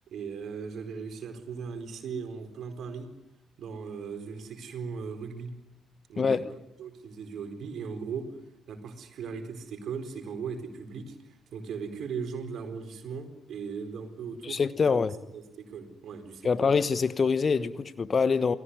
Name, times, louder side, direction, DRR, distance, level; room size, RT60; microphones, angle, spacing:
voice 1, 0.1-3.1 3.6-5.5 6.1-6.4 6.8-8.3 8.7-11.2 11.5-15.0 15.3-16.7, right 5 dB, 55° right, 4.4 m, -38 dB
voice 2, 6.2-6.5 14.4-15.2 16.4-18.5, left 5 dB, 35° left, 1.2 m, -25 dB
28.5 x 19.0 x 9.7 m
figure-of-eight pair, 45°, 0 cm